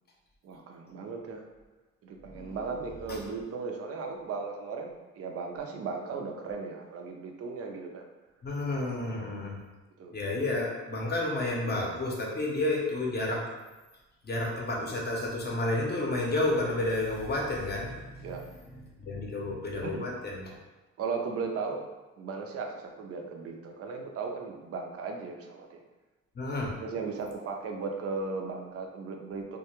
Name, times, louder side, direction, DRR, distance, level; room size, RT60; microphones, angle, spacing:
voice 1, 0.4-1.4 2.0-8.0 9.1-9.2 10.0-10.1 18.2-18.4 19.8-20.1 21.0-21.8 22.2-25.8 26.8-29.6, right 4 dB, 50° right, 2 dB, 0.5 m, -36 dB
voice 2, 2.2-2.6 3.1-3.2 8.4-9.5 10.1-13.4 14.2-18.4 19.0-20.6 26.3-26.7, left 2 dB, 35° left, -2 dB, 0.6 m, -31 dB
2.2 x 2.1 x 2.9 m, 1.1 s
cardioid pair, 90°, 30 cm